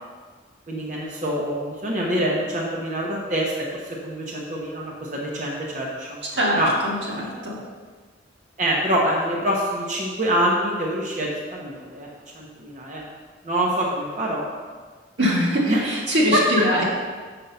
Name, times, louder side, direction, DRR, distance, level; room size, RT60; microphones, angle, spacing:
voice 1, 0.7-6.2 6.6-6.7 8.6-12.1 12.3-13.0 13.4-14.5 15.7-15.8 16.3-16.4 16.8-16.9, right 1 dB, 45° right, -3 dB, 1.1 m, -25 dB
voice 2, 6.3-7.6 15.2-16.8, equal, 90° right, -5 dB, 2.3 m, -22 dB
6.0 x 5.5 x 6.7 m, 1.5 s
head